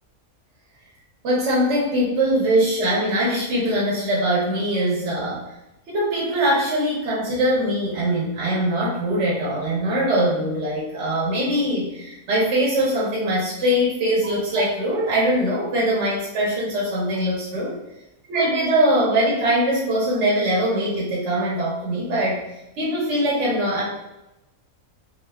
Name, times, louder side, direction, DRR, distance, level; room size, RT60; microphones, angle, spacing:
voice 1, 1.2-5.5 5.9-17.7 18.3-22.4 22.8-23.8, right 1 dB, 60° right, -5 dB, 1.0 m, -22 dB
3.5 x 2.7 x 2.2 m, 0.91 s
omnidirectional pair, 1.5 m